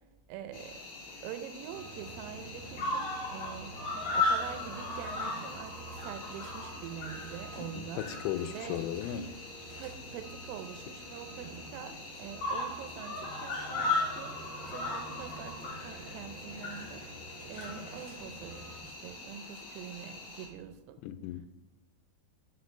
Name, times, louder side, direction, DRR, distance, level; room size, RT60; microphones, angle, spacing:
voice 1, 0.3-0.8 1.2-8.1 8.4-8.8 9.8-17.0 17.5-21.0, right 9 dB, 85° right, 8 dB, 3.3 m, -45 dB
Cricket, 0.5-20.5, left 3 dB, 65° left, 1.5 m, -38 dB
sound 1, 1.7-18.8, right 2 dB, 55° right, 1.8 m, -48 dB
voice 2, 7.7-9.3 21.0-21.5, left 10 dB, 85° left, 11 dB, 3.3 m, -36 dB
11.5 x 6.6 x 3.3 m, 1.1 s
omnidirectional pair, 5.9 m